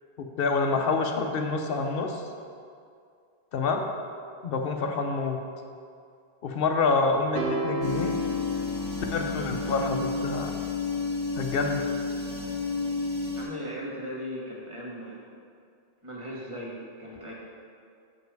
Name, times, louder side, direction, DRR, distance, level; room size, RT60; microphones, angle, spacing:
voice 1, 0.2-2.2 3.5-3.9 4.4-5.4 6.4-8.2 9.1-10.5 11.4-11.8, left 4 dB, 65° left, 4 dB, 0.9 m, -27 dB
sound 1, 7.4-9.8, right 1 dB, 70° right, 1.1 m, -33 dB
sound 2, 7.8-13.4, left 4 dB, 20° left, 1.2 m, -31 dB
voice 2, 13.3-15.2 16.0-17.3, equal, 30° right, -4 dB, 1.5 m, -38 dB
8.3 x 5.1 x 4.7 m, 2.3 s
omnidirectional pair, 1.1 m